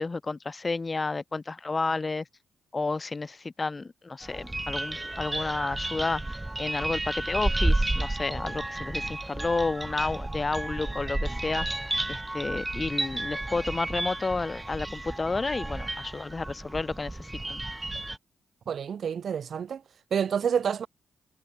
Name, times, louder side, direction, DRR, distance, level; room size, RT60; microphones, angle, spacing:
voice 1, 0.0-2.3 2.7-11.7 12.1-17.6, left 3 dB, 30° left, 0.4 m, -31 dB
sound 1, 4.2-18.2, right 2 dB, 15° right, 2.7 m, -32 dB
voice 2, 18.7-19.8 20.1-20.9, right 7 dB, 65° right, 0.4 m, -28 dB
cardioid pair, 65°, 0 cm